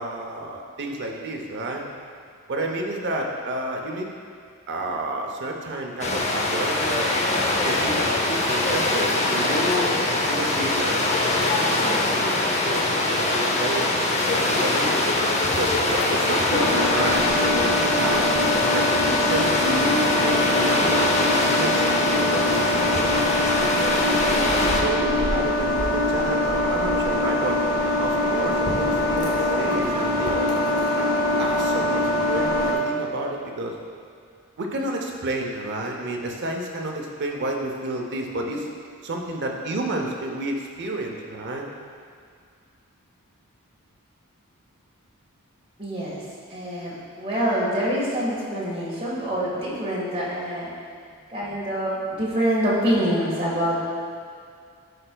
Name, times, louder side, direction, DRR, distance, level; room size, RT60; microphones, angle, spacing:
voice 1, 0.0-1.9 2.5-4.1 4.7-7.1 7.6-10.0 10.3-11.0 11.4-12.3 12.6-14.9 15.5-18.4 18.7-23.7 24.2-27.6 28.0-30.5 31.0-31.1 31.4-33.7 34.6-38.7 39.0-41.7, right 1 dB, 50° right, 1 dB, 0.7 m, -30 dB
sound 1, 6.0-24.8, left 2 dB, 30° left, 0.6 m, -23 dB
sound 2, 16.5-32.7, left 1 dB, 75° left, 1.2 m, -23 dB
voice 2, 45.8-46.2 46.5-50.7 51.3-53.8, equal, 25° right, -7 dB, 1.5 m, -25 dB
11.0 x 4.4 x 2.3 m, 2.2 s
head